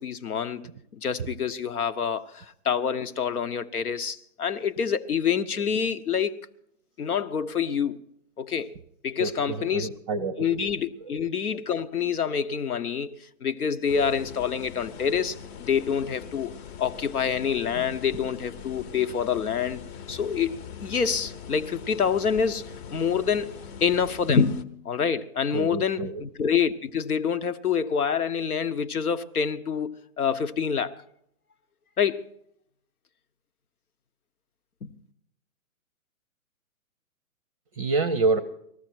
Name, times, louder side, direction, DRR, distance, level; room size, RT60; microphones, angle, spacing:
voice 1, 0.0-6.4 7.0-8.0 8.4-8.7 9.0-9.9 10.4-16.5 16.8-19.8 20.1-20.6 20.8-30.9 32.0-32.3 34.8-34.9, left 7 dB, 85° left, 1.0 m, -27 dB
voice 2, 9.2-10.5 11.0-11.1 17.8-17.9 25.5-26.2 37.7-38.4, right 3 dB, 25° right, 0.5 m, -27 dB
sound 1, 13.9-24.6, left 7 dB, 50° left, 0.9 m, -42 dB
19.0 x 14.5 x 4.5 m
hypercardioid pair, 140°, 43 cm